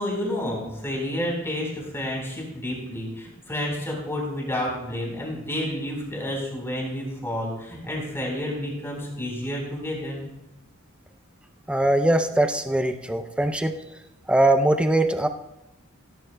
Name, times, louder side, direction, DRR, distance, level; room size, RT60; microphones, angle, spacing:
voice 1, 0.0-10.2, left 1 dB, 10° left, -2 dB, 4.3 m, -30 dB
voice 2, 11.7-13.7 14.3-15.3, right 1 dB, 5° right, 7 dB, 0.5 m, -21 dB
15.5 x 14.0 x 2.2 m, 0.94 s
head